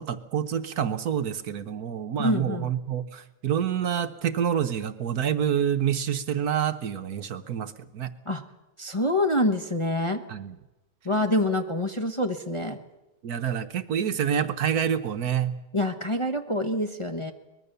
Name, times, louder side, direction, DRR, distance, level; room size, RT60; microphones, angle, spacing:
voice 1, 0.0-8.1 10.3-10.6 13.2-15.6, right 8 dB, 60° right, 10 dB, 1.3 m, -27 dB
voice 2, 2.2-2.7 8.2-8.4 8.8-10.2 11.0-12.8 15.7-17.3, left 1 dB, 20° left, 5 dB, 1.0 m, -26 dB
23.0 x 21.0 x 6.8 m, 1.0 s
omnidirectional pair, 2.0 m